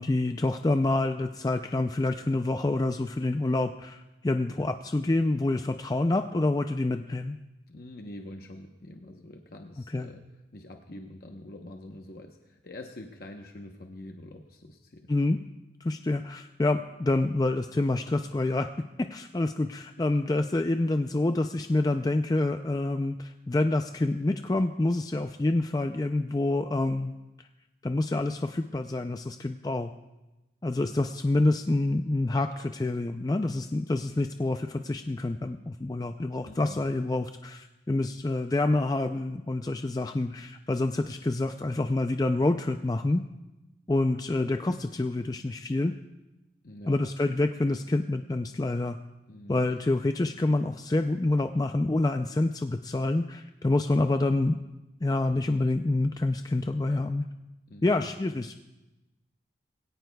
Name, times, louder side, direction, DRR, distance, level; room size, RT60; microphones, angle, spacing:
voice 1, 0.0-7.4 9.9-10.1 15.1-15.4 15.8-18.7 19.0-27.1 27.8-29.9 30.6-43.2 43.9-45.9 46.9-49.0 49.5-54.6 55.0-57.2 57.8-58.6, left 2 dB, 20° left, 6 dB, 0.4 m, -27 dB
voice 2, 7.7-10.3 10.5-15.1 36.4-36.8 46.6-47.0 49.3-49.6 57.7-58.1, left 1 dB, 55° left, 3 dB, 0.9 m, -45 dB
22.0 x 17.0 x 2.3 m, 1.0 s
head